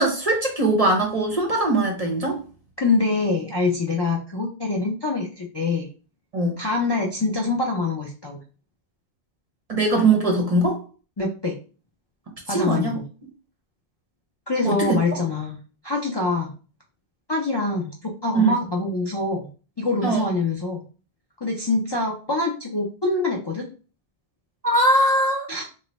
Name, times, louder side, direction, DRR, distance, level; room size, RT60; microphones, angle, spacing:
voice 1, 0.0-2.4 6.3-6.6 9.7-10.8 12.5-13.0 14.6-15.0 18.3-18.5 20.0-20.3 24.6-25.5, right 2 dB, 40° right, 0.6 m, -21 dB
voice 2, 2.8-5.9 6.6-8.4 11.2-11.6 12.5-13.0 14.5-15.6 15.8-16.5 17.3-19.5 19.8-20.8 21.4-23.7 25.5-25.6, left 3 dB, 40° left, 0.4 m, -25 dB
3.1 x 2.1 x 4.0 m
omnidirectional pair, 1.1 m